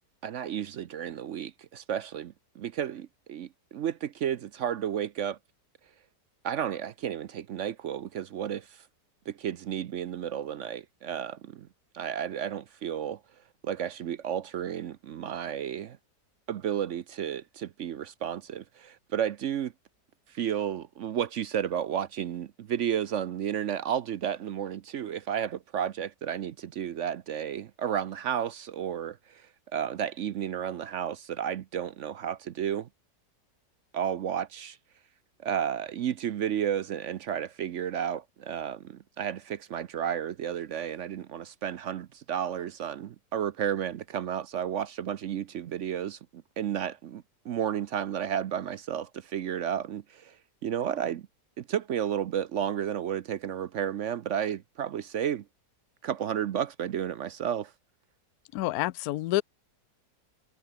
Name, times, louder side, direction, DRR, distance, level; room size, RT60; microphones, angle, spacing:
voice 1, 0.2-5.4 6.4-8.9 9.3-11.7 11.9-13.2 13.6-16.0 16.5-19.7 20.3-32.9 33.9-34.8 35.4-51.3 51.6-55.4 56.0-57.7, right 9 dB, 65° right, 0.8 m, -32 dB
voice 2, 58.5-59.4, left 16 dB, 70° left, 1.0 m, -28 dB
omnidirectional pair, 1.9 m